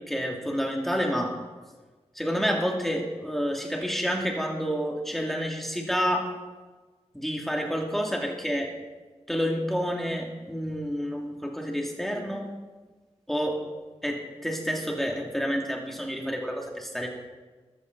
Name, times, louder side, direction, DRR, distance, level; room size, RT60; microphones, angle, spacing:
voice 1, 0.1-1.3 2.1-6.3 7.1-8.7 9.3-12.5 13.3-13.6 14.0-17.1, equal, ahead, 0 dB, 2.7 m, -29 dB
14.5 x 12.5 x 4.1 m, 1.3 s
wide cardioid pair, 70°, 11 cm